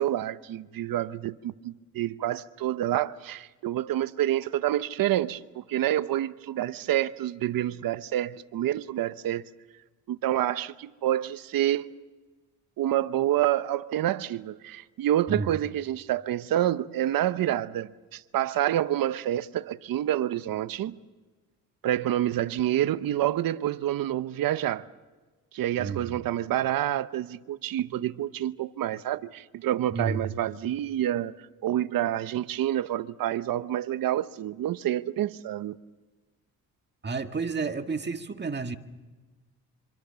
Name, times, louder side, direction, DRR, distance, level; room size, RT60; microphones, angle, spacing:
voice 1, 0.0-9.4 10.1-11.9 12.8-21.0 21.8-24.9 25.5-31.3 31.6-35.8, right 12 dB, 75° right, 0.9 m, -28 dB
voice 2, 25.8-26.2 29.9-30.3 37.0-38.8, right 4 dB, 30° right, 1.9 m, -31 dB
26.0 x 25.5 x 7.0 m
cardioid pair, 85°, 34 cm